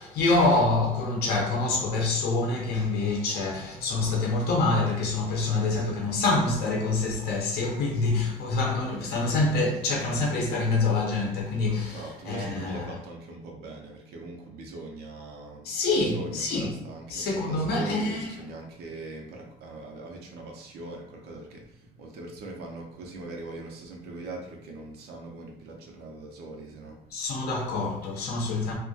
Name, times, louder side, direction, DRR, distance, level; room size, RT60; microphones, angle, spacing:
voice 1, 0.0-12.9 15.6-16.7 17.1-18.3 27.1-28.8, left 3 dB, 70° left, 0.6 m, -26 dB
voice 2, 11.7-15.7 15.9-27.2, right 2 dB, 75° right, 0.5 m, -41 dB
2.2 x 2.1 x 2.6 m
cardioid pair, 110°, 17 cm